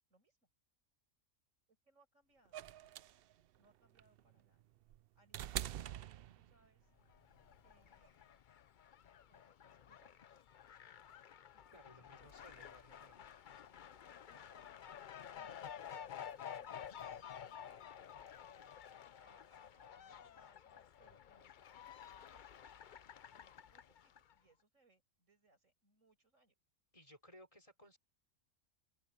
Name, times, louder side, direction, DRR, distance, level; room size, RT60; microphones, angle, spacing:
voice 1, 0.1-0.5 1.8-3.0 3.6-4.6 5.2-6.0 6.3-6.9 7.6-8.4 9.3-10.5 11.5-13.2 14.3-14.7 15.3-18.3 19.2-22.6 23.2-26.6, right 2 dB, 80° right, 6.9 m, -72 dB
sound 1, 2.5-6.8 8.0-8.1, right 12 dB, 60° right, 0.6 m, -45 dB
Fowl, 7.0-24.3, left 8 dB, 50° left, 0.6 m, -52 dB
voice 2, 11.7-13.4 26.9-28.0, equal, 25° left, 4.7 m, -61 dB
open air
omnidirectional pair, 1.3 m